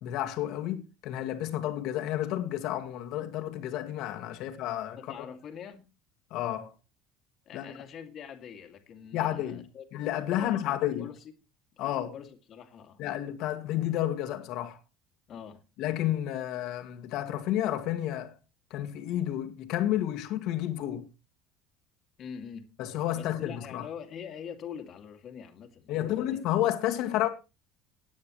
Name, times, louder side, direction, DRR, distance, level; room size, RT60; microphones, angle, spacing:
voice 1, 0.0-5.0 6.3-6.7 7.5-7.7 9.1-9.6 9.9-11.1 11.8-12.1 13.0-14.8 15.8-18.4 18.7-21.1 22.8-23.8 25.9-27.3, left 12 dB, 65° left, 2.0 m, -31 dB
voice 2, 5.0-5.9 7.5-9.8 10.3-11.3 11.8-13.0 15.3-15.6 22.2-22.7 23.1-26.5, left 7 dB, 40° left, 2.3 m, -44 dB
18.5 x 9.5 x 3.1 m
cardioid pair, 140°, 0 cm